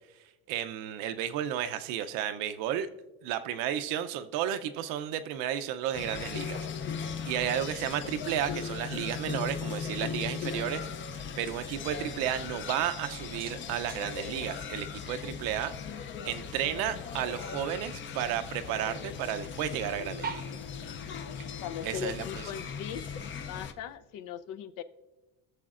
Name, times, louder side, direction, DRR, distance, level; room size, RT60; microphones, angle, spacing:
voice 1, 0.5-2.9 3.2-6.6 7.2-10.9 11.1-15.7 16.2-20.4 21.8-22.4, right 10 dB, 85° right, 10 dB, 0.7 m, -33 dB
sound 1, 5.9-23.7, left 6 dB, 35° left, 0.5 m, -38 dB
sound 2, 9.7-24.0, right 6 dB, 25° right, 0.7 m, -51 dB
voice 2, 21.6-23.1 23.5-24.8, left 9 dB, 70° left, 11 dB, 0.7 m, -39 dB
20.0 x 6.9 x 2.5 m, 1.1 s
cardioid pair, 120°, 33 cm